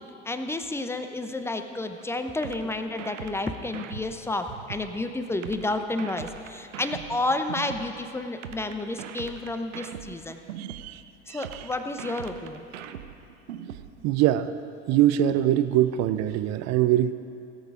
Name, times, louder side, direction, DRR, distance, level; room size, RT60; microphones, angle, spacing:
voice 1, 0.2-10.4 11.3-12.6, left 2 dB, 5° left, 8 dB, 0.8 m, -31 dB
sound 1, 2.4-4.9 5.4-7.9 8.4-10.9 11.4-13.9, right 10 dB, 80° right, 0.7 m, -40 dB
voice 2, 10.6-11.0 11.3-11.7 14.0-14.5 14.9-17.1, right 12 dB, 45° right, 12 dB, 0.6 m, -23 dB
17.0 x 8.1 x 4.8 m, 2.6 s
hypercardioid pair, 70°, 37 cm